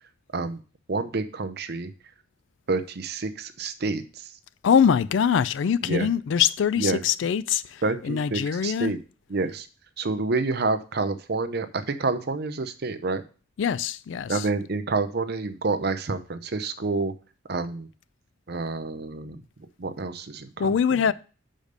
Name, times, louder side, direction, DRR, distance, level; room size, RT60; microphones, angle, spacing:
voice 1, 0.9-1.9 2.7-4.4 5.8-6.1 6.8-7.0 7.8-9.0 9.3-9.7 10.0-13.2 14.3-17.1 17.5-17.9 18.5-19.4 19.8-20.7, right 3 dB, 55° right, 0.7 m, -28 dB
voice 2, 4.6-8.9 13.6-14.5 20.6-21.1, left 7 dB, 70° left, 0.4 m, -23 dB
6.6 x 5.1 x 5.1 m
head